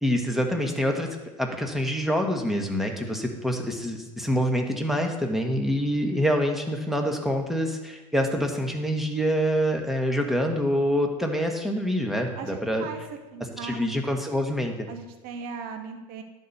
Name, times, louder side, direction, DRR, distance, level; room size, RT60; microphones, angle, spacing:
voice 1, 0.0-1.1 1.4-12.9 13.6-14.9, equal, ahead, 3 dB, 1.6 m, -26 dB
voice 2, 12.3-13.0 13.3-13.9 14.9-16.2, right 5 dB, 50° right, 5 dB, 1.3 m, -38 dB
11.0 x 4.4 x 6.7 m, 1.1 s
hypercardioid pair, 85°, 19 cm